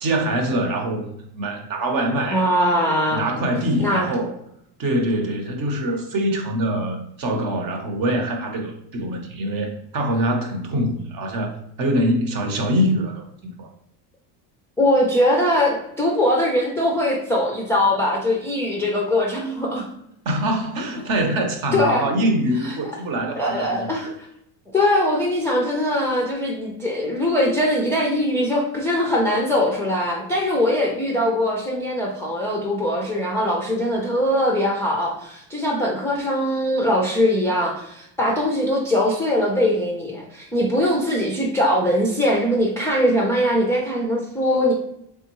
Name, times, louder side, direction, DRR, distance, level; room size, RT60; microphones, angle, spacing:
voice 1, 0.0-2.5 3.1-4.3 4.8-13.7 20.2-24.1, right 1 dB, 45° right, 3 dB, 0.9 m, -24 dB
voice 2, 2.3-3.3 3.8-4.1 14.8-19.9 21.7-22.1 23.3-24.1 24.7-44.7, left 1 dB, 5° left, -3 dB, 0.4 m, -21 dB
3.5 x 3.5 x 3.0 m, 0.76 s
cardioid pair, 135°, 48 cm